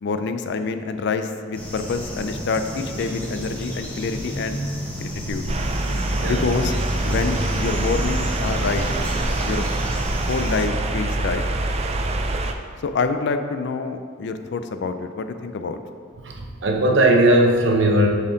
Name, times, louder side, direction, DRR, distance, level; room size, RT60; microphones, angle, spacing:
voice 1, 0.0-4.6 5.0-5.5 6.2-6.7 7.0-8.9 9.5-9.7 10.3-11.4 12.8-15.8, left 4 dB, 60° left, 9 dB, 0.4 m, -26 dB
sound 1, 1.5-10.6, equal, 5° left, 1.0 m, -31 dB
sound 2, 5.5-12.5, right 2 dB, 30° right, 0.4 m, -25 dB
voice 2, 16.2-18.1, right 1 dB, 60° right, 1 dB, 0.8 m, -18 dB
7.0 x 4.4 x 3.9 m, 2.1 s
head